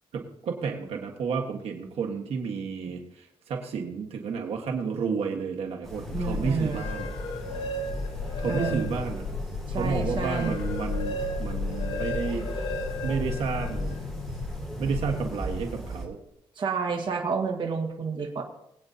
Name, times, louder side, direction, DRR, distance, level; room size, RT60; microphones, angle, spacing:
voice 1, 0.1-7.1 8.4-9.2 9.7-12.5 13.0-14.0 14.8-16.2, right 5 dB, 80° right, 2 dB, 1.5 m, -31 dB
sound 1, 5.8-16.1, equal, 5° left, 2.7 m, -38 dB
sound 2, 6.1-15.5, left 4 dB, 80° left, 1.1 m, -35 dB
voice 2, 6.1-6.8 8.5-8.9 9.7-10.6 16.6-18.4, right 5 dB, 50° right, 2 dB, 1.6 m, -30 dB
sound 3, 6.5-9.2 9.7-14.0, left 1 dB, 60° left, 1.8 m, -36 dB
21.5 x 8.9 x 2.8 m, 0.79 s
cardioid pair, 135°, 10 cm